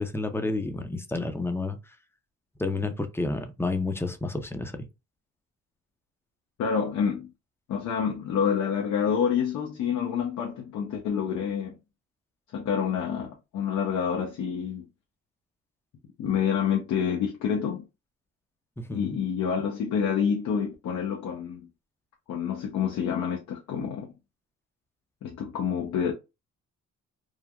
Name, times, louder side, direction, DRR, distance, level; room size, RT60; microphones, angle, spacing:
voice 1, 0.0-1.8 2.6-4.8 18.9-19.2, left 3 dB, 10° left, 0.5 m, -30 dB
voice 2, 6.6-7.3 7.7-11.8 12.5-14.8 16.2-17.8 18.9-21.7 22.3-24.1 25.2-26.1, left 7 dB, 75° left, 0.7 m, -28 dB
3.2 x 2.2 x 2.3 m
cardioid pair, 90°, 30 cm